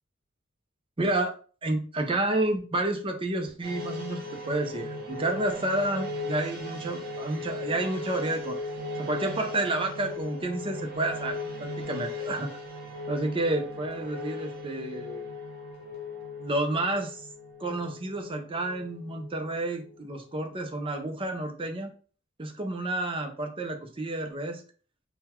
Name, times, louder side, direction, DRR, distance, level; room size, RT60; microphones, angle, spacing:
voice 1, 1.0-1.3 1.6-4.2 4.5-8.6 9.0-12.5 13.1-15.2 16.4-17.3 17.6-21.9 22.4-24.6, right 2 dB, 25° right, 4 dB, 0.6 m, -30 dB
sound 1, 3.6-20.3 20.7-20.8, left 2 dB, 50° right, 1.1 m, -38 dB
3.8 x 2.2 x 4.3 m, 0.40 s
head